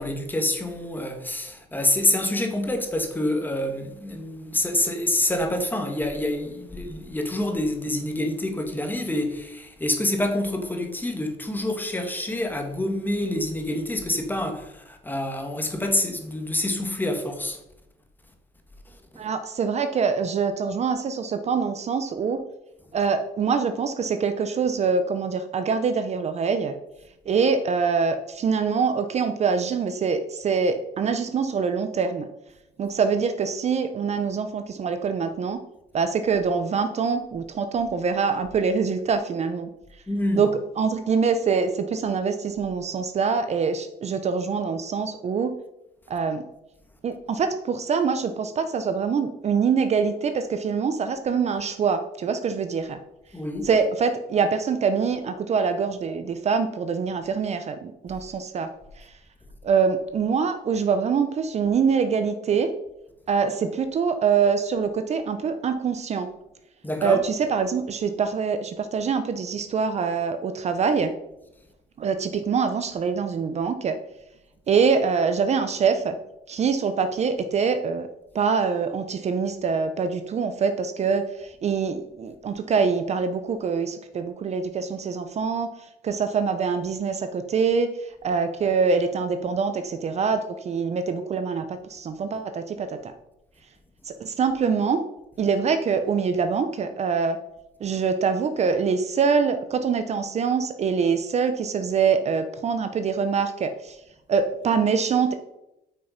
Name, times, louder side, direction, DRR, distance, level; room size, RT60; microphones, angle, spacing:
voice 1, 0.0-17.6 19.1-19.3 40.1-40.5 53.3-53.7 66.8-67.2, left 1 dB, 10° left, 1.6 m, -27 dB
voice 2, 19.2-22.4 22.9-26.7 27.3-32.3 32.8-35.6 35.9-39.7 40.4-40.5 40.8-45.6 46.1-46.4 47.0-53.0 53.6-58.7 59.0-59.1 59.6-62.7 63.3-66.3 67.0-71.1 72.0-74.0 74.7-76.1 76.5-78.1 78.3-85.7 86.0-93.1 94.1-95.0 95.4-97.4 97.8-104.0 104.3-105.4, right 5 dB, 40° right, 0.7 m, -24 dB
8.4 x 5.7 x 5.2 m
cardioid pair, 110°, 17 cm